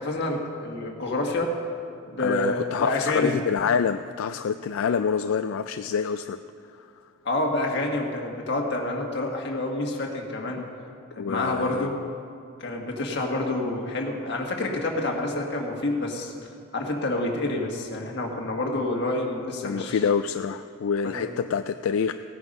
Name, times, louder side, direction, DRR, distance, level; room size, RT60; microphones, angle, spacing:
voice 1, 0.0-1.5 2.1-3.4 7.2-10.6 11.2-12.0 12.6-16.3 16.7-20.0 21.0-21.2, left 2 dB, 55° left, 1 dB, 1.7 m, -28 dB
voice 2, 2.2-6.4 6.8-6.9 11.2-11.9 19.6-22.1, left 6 dB, 80° left, 10 dB, 0.3 m, -26 dB
17.0 x 9.6 x 5.4 m, 2.4 s
head